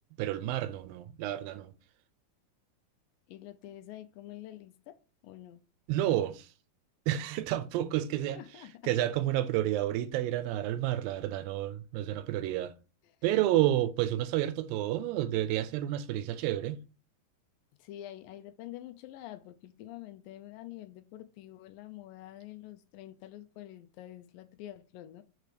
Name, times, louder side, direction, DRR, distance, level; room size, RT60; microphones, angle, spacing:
voice 1, 0.2-1.7 5.9-6.5 7.1-8.4 8.8-12.7 13.2-16.8, right 13 dB, 85° right, 2.3 m, -30 dB
voice 2, 3.3-5.0 5.2-5.6 8.3-8.9 13.0-13.2 17.8-25.2, left 13 dB, 80° left, 2.2 m, -47 dB
5.0 x 4.6 x 4.9 m
omnidirectional pair, 4.1 m